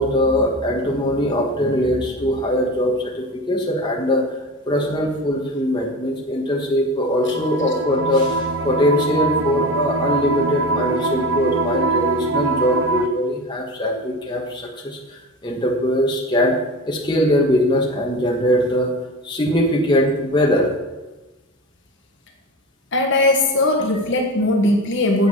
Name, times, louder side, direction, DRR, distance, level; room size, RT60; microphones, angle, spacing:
voice 1, 0.0-4.2 4.7-16.5 16.9-18.9 19.2-20.7, equal, 20° left, -1 dB, 1.4 m, -21 dB
sound 1, 7.2-13.1, right 3 dB, 60° right, 0.7 m, -23 dB
voice 2, 22.9-25.3, left 2 dB, 55° left, 3 dB, 1.4 m, -18 dB
8.1 x 7.8 x 6.6 m, 1.1 s
head